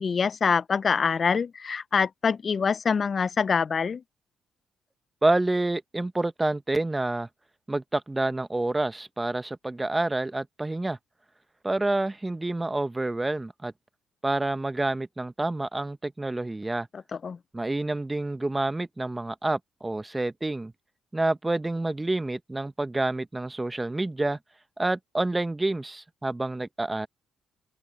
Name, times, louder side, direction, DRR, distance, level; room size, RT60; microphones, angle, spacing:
voice 1, 0.0-4.0 17.2-17.4, left 6 dB, 50° left, 0.8 m, -25 dB
voice 2, 5.2-7.3 7.7-11.0 11.6-13.7 14.2-16.9 17.5-20.7 21.1-24.4 24.8-27.1, right 2 dB, 20° right, 1.1 m, -28 dB
open air
supercardioid pair, 55°, 0 cm